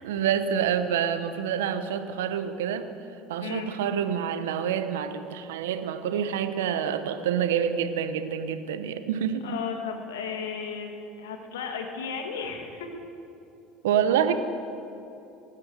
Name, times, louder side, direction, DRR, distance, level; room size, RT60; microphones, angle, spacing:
voice 1, 0.0-2.9 3.3-9.5 13.8-14.3, right 8 dB, 75° right, 10 dB, 0.9 m, -27 dB
voice 2, 3.4-3.7 9.4-12.9, left 6 dB, 80° left, 3 dB, 1.8 m, -34 dB
19.0 x 7.8 x 7.6 m, 2.8 s
hypercardioid pair, 70°, 0 cm